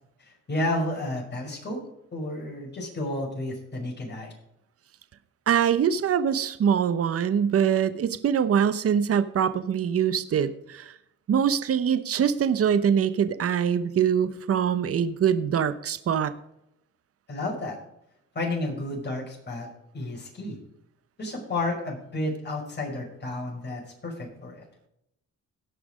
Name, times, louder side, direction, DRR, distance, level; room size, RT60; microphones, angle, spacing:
voice 1, 0.2-1.8 2.1-4.3 17.3-17.8 18.3-19.7 19.9-20.6 21.2-24.7, left 2 dB, 35° left, -1 dB, 5.6 m, -31 dB
voice 2, 5.5-10.9 11.3-16.3, right 8 dB, 50° right, 13 dB, 0.9 m, -23 dB
17.5 x 6.0 x 5.1 m, 0.79 s
cardioid pair, 90°, 30 cm